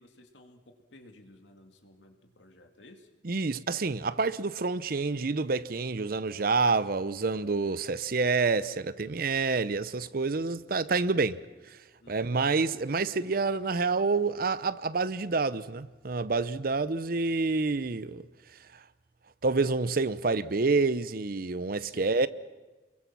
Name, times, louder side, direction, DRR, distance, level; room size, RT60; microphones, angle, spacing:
voice 1, 0.0-3.1 12.0-12.4 21.9-22.3, left 1 dB, 85° left, 2.5 m, -55 dB
voice 2, 3.2-11.4 12.1-18.3 19.4-22.3, right 4 dB, 55° right, 0.7 m, -28 dB
28.5 x 22.5 x 6.1 m
head